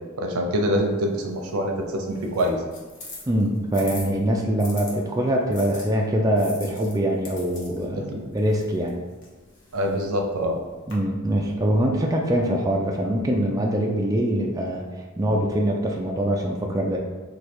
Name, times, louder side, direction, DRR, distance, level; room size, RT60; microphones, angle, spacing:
voice 1, 0.2-2.6 7.9-8.3 9.7-10.6, equal, 85° right, 2 dB, 0.6 m, -25 dB
sound 1, 0.8-4.9 5.5-10.9, left 3 dB, 60° left, 0.9 m, -44 dB
voice 2, 3.3-8.0 8.3-9.0 10.9-14.9 15.2-17.0, right 1 dB, 15° right, 0 dB, 0.3 m, -23 dB
3.1 x 2.3 x 4.3 m, 1.4 s
head